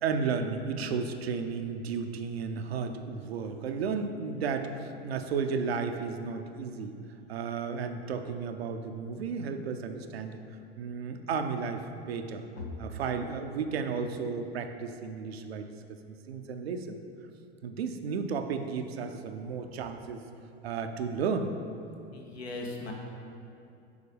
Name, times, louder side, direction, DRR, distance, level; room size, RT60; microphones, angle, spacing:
voice 1, 0.0-6.9 7.3-10.4 10.8-11.8 12.1-12.4 12.8-17.0 17.6-20.2 20.6-21.5, right 5 dB, 80° right, 6 dB, 0.5 m, -33 dB
voice 2, 22.1-22.9, left 2 dB, 85° left, 0 dB, 0.8 m, -38 dB
7.0 x 4.3 x 3.3 m, 2.7 s
hypercardioid pair, 80°, 31 cm